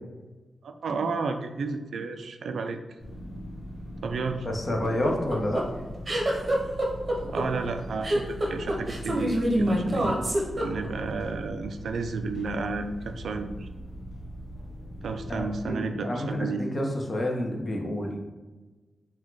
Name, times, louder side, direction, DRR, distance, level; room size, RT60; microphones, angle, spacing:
voice 1, 0.6-2.8 4.0-4.5 7.2-10.1 10.6-13.7 15.0-16.6, right 4 dB, 85° right, 6 dB, 0.3 m, -32 dB
sound 1, 3.0-15.7, equal, 60° left, 1.0 m, -40 dB
voice 2, 4.5-5.6 15.3-18.2, left 1 dB, 30° left, 1 dB, 0.6 m, -29 dB
sound 2, 4.8-11.1, right 1 dB, 30° right, 0.8 m, -26 dB
4.0 x 2.2 x 4.6 m, 1.2 s
wide cardioid pair, 145°, 0 cm